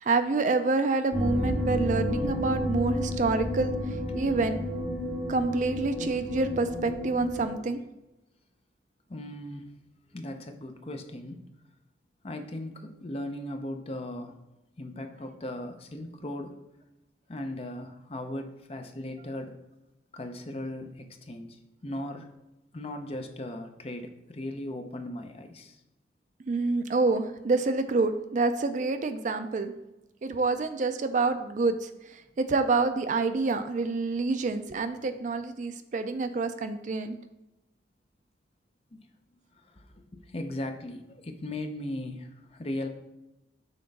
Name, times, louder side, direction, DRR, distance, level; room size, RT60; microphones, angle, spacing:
voice 1, 0.0-3.7 4.2-4.6 5.3-7.8 26.5-29.7 30.2-37.2, right 3 dB, 40° right, 9 dB, 0.4 m, -27 dB
sound 1, 1.1-7.4, left 1 dB, 5° right, 1.4 m, -31 dB
voice 2, 9.1-9.7 10.1-11.5 12.2-14.4 14.8-16.6 17.3-19.6 20.1-22.3 22.7-25.8 38.9-39.1 39.5-42.9, left 1 dB, 30° left, 6 dB, 0.5 m, -38 dB
5.8 x 3.8 x 5.2 m, 0.96 s
head